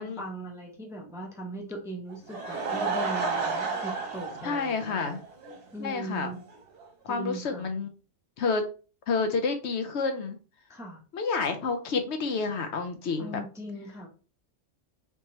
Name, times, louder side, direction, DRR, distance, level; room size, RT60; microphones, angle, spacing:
voice 1, 0.0-5.1 5.7-6.4 7.1-7.7 10.7-11.0 13.2-14.1, right 1 dB, 5° right, 1 dB, 0.5 m, -39 dB
Laughter / Crowd, 2.1-5.6 5.9-6.0 6.5-6.6 6.8-6.9, right 4 dB, 55° right, 1.1 m, -31 dB
voice 2, 4.4-5.2 5.8-6.3 7.0-7.9 8.4-8.7 9.1-10.4 11.1-13.4, left 4 dB, 70° left, 7 dB, 0.8 m, -29 dB
3.6 x 2.8 x 3.0 m, 0.36 s
omnidirectional pair, 1.3 m